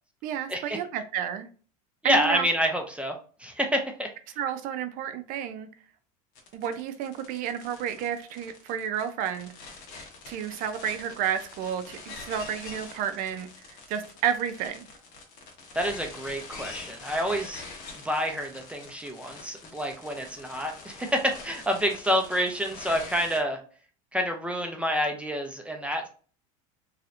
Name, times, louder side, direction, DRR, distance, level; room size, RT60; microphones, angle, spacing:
voice 1, 0.2-1.5 2.0-2.5 4.4-5.7 6.5-9.5 10.3-14.9, right 9 dB, 55° right, 9 dB, 0.5 m, -31 dB
voice 2, 2.0-4.1 15.8-17.6 18.0-23.6 24.1-26.1, equal, 5° right, 3 dB, 0.5 m, -28 dB
sound 1, 6.4-23.4, left 4 dB, 70° left, 1.1 m, -44 dB
3.1 x 2.9 x 2.5 m, 0.39 s
supercardioid pair, 120°, 17 cm